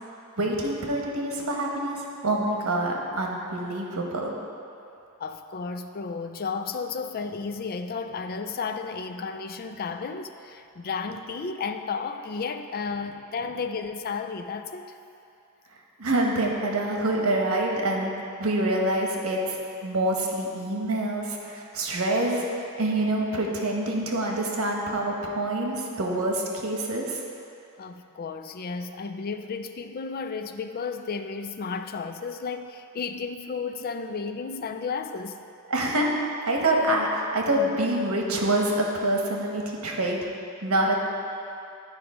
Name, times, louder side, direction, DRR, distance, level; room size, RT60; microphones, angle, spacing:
voice 1, 0.4-4.3 16.0-18.1 18.4-27.2 35.7-36.1 36.4-40.2 40.6-40.9, right 1 dB, 85° right, 0 dB, 1.1 m, -26 dB
voice 2, 5.2-14.9 27.8-35.4, left 5 dB, 45° left, 7 dB, 0.4 m, -33 dB
10.0 x 4.9 x 4.9 m, 2.6 s
head